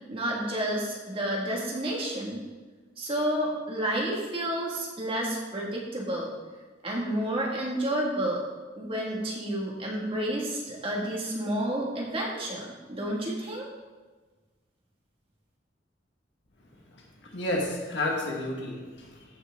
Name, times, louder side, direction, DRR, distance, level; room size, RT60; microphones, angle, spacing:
voice 1, 0.1-2.4 3.0-6.3 6.8-8.4 8.8-13.7, right 1 dB, 30° right, -3 dB, 2.2 m, -30 dB
voice 2, 17.2-19.2, left 1 dB, 65° left, -1 dB, 2.1 m, -31 dB
14.0 x 6.4 x 3.9 m, 1.3 s
head